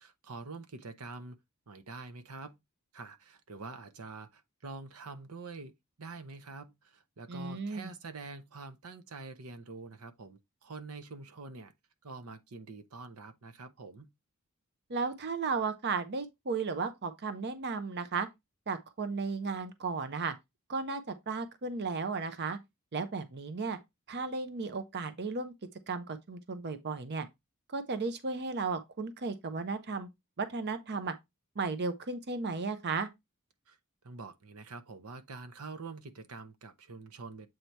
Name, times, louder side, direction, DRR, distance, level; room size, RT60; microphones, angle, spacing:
voice 1, 0.0-1.4 1.7-2.6 2.9-5.7 6.0-11.7 12.0-14.1 33.7-33.8 34.0-37.5, right 3 dB, 80° right, 0.8 m, -46 dB
voice 2, 7.3-7.9 14.9-18.3 18.7-20.3 20.7-22.6 22.9-23.8 24.1-25.5 25.9-27.3 27.7-30.1 30.4-31.1 31.6-33.1, right 4 dB, 50° right, 0.7 m, -34 dB
7.8 x 2.8 x 4.5 m
head